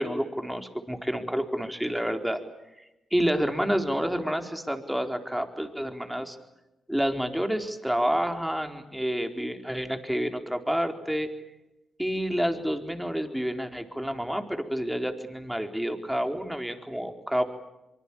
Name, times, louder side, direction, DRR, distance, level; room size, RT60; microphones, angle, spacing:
voice 1, 0.0-2.4 3.1-6.4 6.9-11.3 12.0-17.4, equal, 5° right, 5 dB, 4.3 m, -29 dB
24.5 x 24.0 x 8.7 m, 0.94 s
supercardioid pair, 45°, 0 cm